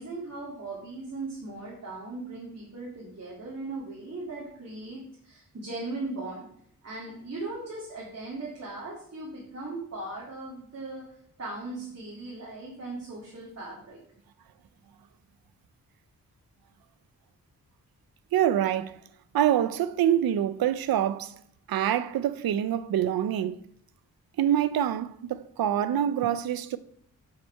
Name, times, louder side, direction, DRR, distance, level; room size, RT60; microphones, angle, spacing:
voice 1, 0.0-6.5 6.8-11.0 11.4-14.0, right 2 dB, 45° right, 2.3 m, -38 dB
voice 2, 18.3-19.0 19.3-21.4 21.7-23.6 24.4-26.8, right 10 dB, 90° right, 0.5 m, -25 dB
7.5 x 5.7 x 4.4 m
wide cardioid pair, 85°, 35 cm